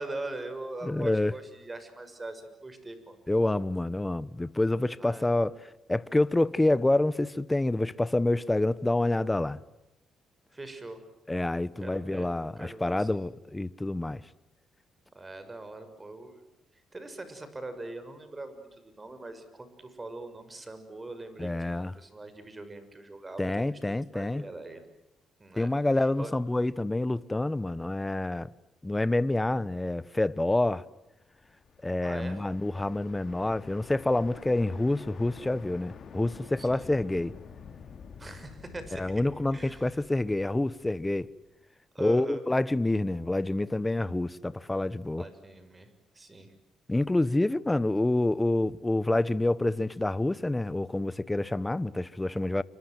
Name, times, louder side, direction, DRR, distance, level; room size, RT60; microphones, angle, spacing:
voice 1, 0.0-3.2 5.0-5.3 10.5-11.0 11.8-12.3 12.6-13.2 15.1-16.4 16.9-23.8 24.1-24.8 25.4-25.7 26.0-26.3 32.0-32.4 36.6-36.9 38.2-39.2 39.5-40.0 41.9-42.4 45.2-46.5, right 2 dB, 20° right, 6.4 m, -42 dB
voice 2, 0.8-1.3 3.3-5.6 5.9-9.6 11.3-14.2 21.4-21.9 23.4-24.4 25.6-28.5 28.8-30.8 31.8-37.3 39.0-41.3 42.0-45.3 46.9-52.6, left 2 dB, 15° left, 1.2 m, -27 dB
sound 1, 31.3-41.3, left 6 dB, 55° left, 3.3 m, -49 dB
29.0 x 25.5 x 7.8 m
cardioid pair, 90°, 0 cm